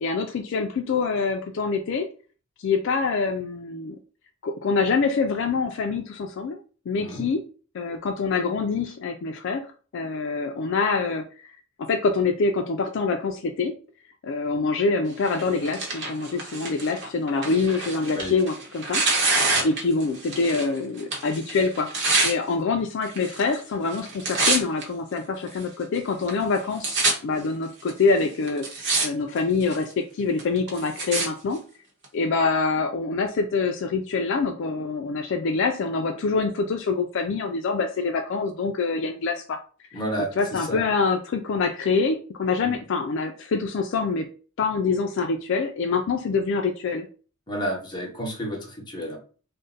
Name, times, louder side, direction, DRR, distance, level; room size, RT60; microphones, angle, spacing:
voice 1, 0.0-2.1 2.6-4.0 4.4-6.6 6.9-7.4 7.7-9.6 9.9-11.5 11.9-13.7 14.2-19.0 19.6-28.6 29.0-31.6 32.1-39.6 40.4-44.3 44.6-47.1, left 4 dB, 60° left, 4 dB, 0.3 m, -25 dB
Tearing, 15.3-20.7 21.0-22.3 23.1-23.6 23.9-24.8 25.5-25.6 26.3-26.4 26.6-27.1 27.9-28.0 28.5-29.1 29.4-29.8 30.4-31.3 32.0-32.1, right 3 dB, 55° right, 0.9 m, -26 dB
voice 2, 39.9-40.9 42.6-42.7 47.5-49.2, equal, 20° left, -1 dB, 0.9 m, -31 dB
2.5 x 2.1 x 3.8 m, 0.38 s
head